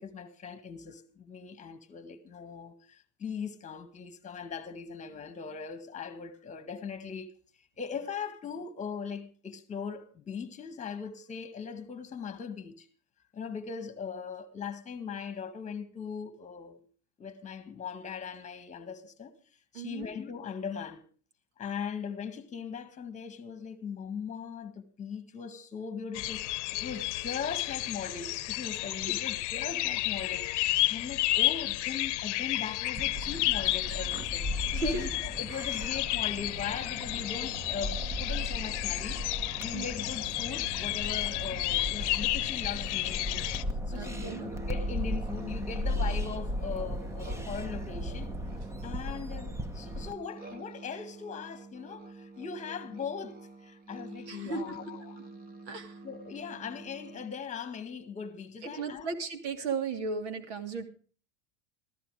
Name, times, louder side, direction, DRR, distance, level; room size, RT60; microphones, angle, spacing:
voice 1, 0.0-7.3 7.8-12.9 13.3-16.8 17.2-19.4 19.7-21.0 21.6-39.2 39.6-43.4 43.9-48.4 48.8-55.2 56.0-59.1, left 6 dB, 20° left, 1.9 m, -40 dB
voice 2, 19.7-20.1 34.7-35.0 39.7-39.8 43.9-44.5 54.3-54.8 55.7-56.0 58.6-60.9, right 4 dB, 70° right, 2.7 m, -35 dB
sound 1, 26.1-43.6, left 18 dB, 70° left, 0.8 m, -32 dB
sound 2, 33.0-50.1, equal, 10° right, 0.9 m, -36 dB
sound 3, 43.9-57.3, right 3 dB, 25° right, 2.1 m, -48 dB
14.0 x 14.0 x 4.9 m
supercardioid pair, 130°, 36 cm